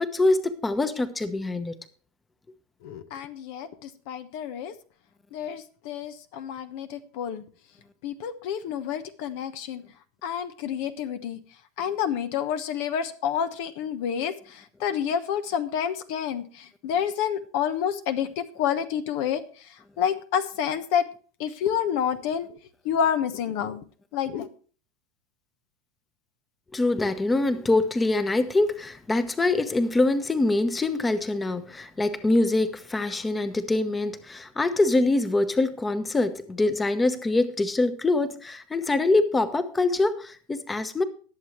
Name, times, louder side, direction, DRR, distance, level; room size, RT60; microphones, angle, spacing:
voice 1, 0.0-1.7 26.7-41.0, left 2 dB, 15° left, 1.0 m, -24 dB
voice 2, 2.8-4.7 5.3-7.4 8.0-9.8 10.2-11.4 11.8-19.4 20.0-21.1 21.4-22.5 22.8-23.8 24.1-24.5, left 8 dB, 65° left, 1.0 m, -29 dB
20.0 x 7.4 x 3.2 m
hypercardioid pair, 100°, 0 cm